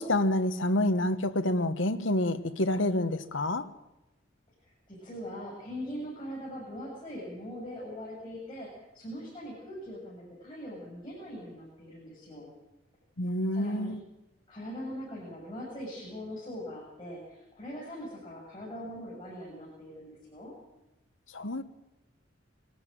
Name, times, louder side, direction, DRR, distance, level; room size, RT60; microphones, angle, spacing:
voice 1, 0.0-3.7 13.2-14.0 21.3-21.6, left 1 dB, 75° left, 9 dB, 1.4 m, -28 dB
voice 2, 4.6-8.7 8.9-12.5 13.5-13.9 14.5-20.5, equal, 25° left, -6 dB, 7.7 m, -41 dB
25.0 x 13.0 x 9.3 m, 0.96 s
head